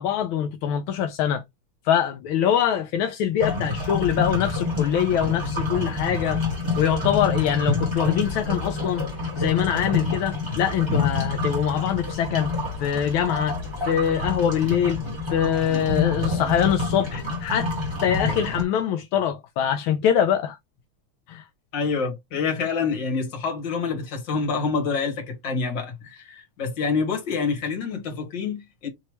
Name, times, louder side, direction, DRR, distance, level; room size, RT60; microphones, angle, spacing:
voice 1, 0.0-1.4 1.8-6.4 6.8-9.0 9.4-12.5 12.8-13.6 13.8-15.0 15.3-17.7 18.0-20.6 21.3-21.4, left 9 dB, 80° left, 1.4 m, -23 dB
sound 1, 3.4-18.6, left 3 dB, 15° right, 1.4 m, -27 dB
voice 2, 21.7-28.9, left 5 dB, 60° left, 2.2 m, -27 dB
5.5 x 3.0 x 3.1 m
omnidirectional pair, 2.3 m